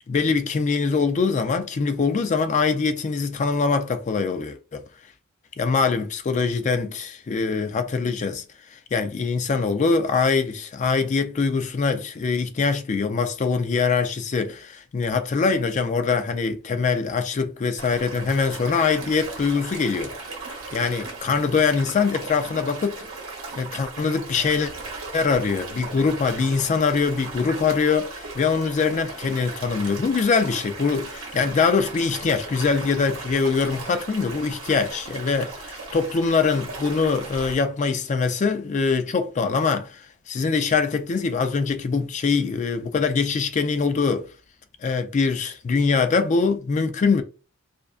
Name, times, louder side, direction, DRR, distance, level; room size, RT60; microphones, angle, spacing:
voice 1, 0.0-4.8 5.6-8.4 8.7-20.1 20.7-23.0 23.6-24.7 25.1-44.3 44.8-47.2, left 5 dB, 35° left, 0.3 m, -23 dB
sound 1, 17.8-37.5, right 3 dB, 65° right, 0.9 m, -37 dB
2.4 x 2.2 x 2.3 m
head